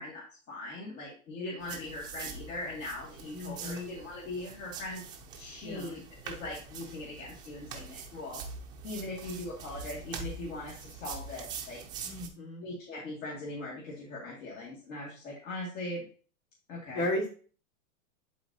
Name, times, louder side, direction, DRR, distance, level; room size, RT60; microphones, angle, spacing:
voice 1, 0.0-5.0 5.3-8.4 8.8-11.8 12.6-16.1 16.7-17.1, left 2 dB, 60° left, -4 dB, 2.3 m, -40 dB
sound 1, 1.6-12.3, right 5 dB, 10° right, 0.5 m, -44 dB
voice 2, 3.3-3.9 5.6-6.0 12.0-12.6 16.9-17.3, left 1 dB, 80° left, -1 dB, 3.6 m, -34 dB
11.0 x 4.2 x 2.8 m, 0.41 s
supercardioid pair, 155°, 43 cm